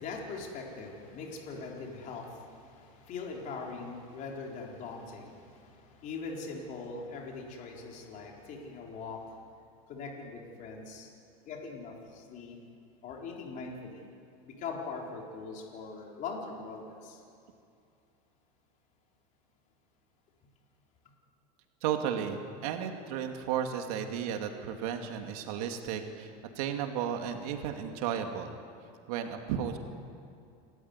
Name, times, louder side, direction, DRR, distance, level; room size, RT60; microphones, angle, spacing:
voice 1, 0.0-9.4 9.9-11.1 11.5-12.6 13.0-14.1 14.4-17.2, left 4 dB, 45° left, 0 dB, 4.2 m, -41 dB
voice 2, 21.8-28.5 29.1-29.8, right 8 dB, 75° right, 5 dB, 2.3 m, -34 dB
28.5 x 14.0 x 9.6 m, 2.5 s
supercardioid pair, 140°, 19 cm